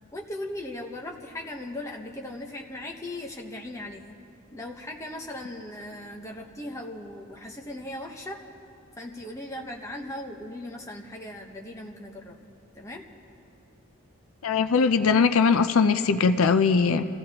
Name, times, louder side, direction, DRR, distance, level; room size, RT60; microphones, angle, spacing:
voice 1, 0.1-4.2 4.5-8.4 9.0-12.4 12.7-13.0, left 1 dB, 15° left, 0 dB, 1.0 m, -38 dB
voice 2, 14.4-17.2, left 5 dB, 80° left, 10 dB, 0.5 m, -21 dB
28.5 x 15.0 x 2.9 m, 2.7 s
head